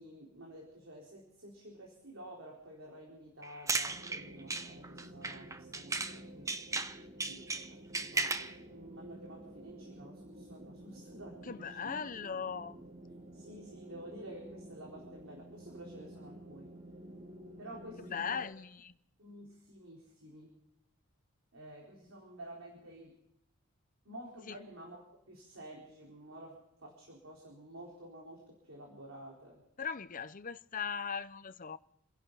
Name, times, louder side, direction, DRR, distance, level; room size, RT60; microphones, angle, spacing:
voice 1, 0.0-6.5 7.2-11.9 13.3-16.7 17.6-18.5 19.2-20.5 21.5-23.1 24.0-26.6 26.8-29.6, right 1 dB, 70° right, 4.3 m, -51 dB
sound 1, 3.4-6.2 6.5-8.6, right 3 dB, 15° right, 0.7 m, -36 dB
sound 2, 3.9-18.5, right 1 dB, 35° right, 1.5 m, -51 dB
voice 2, 11.4-12.8 18.0-18.9 24.5-24.6 29.8-31.8, left 6 dB, 40° left, 0.7 m, -39 dB
29.5 x 11.5 x 4.0 m
head